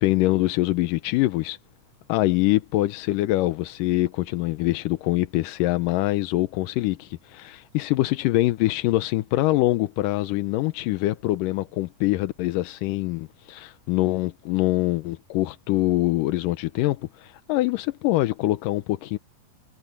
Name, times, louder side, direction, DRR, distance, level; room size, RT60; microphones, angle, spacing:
voice 1, 0.0-1.6 2.1-19.2, left 17 dB, 90° left, 2.4 m, -24 dB
omnidirectional pair, 3.8 m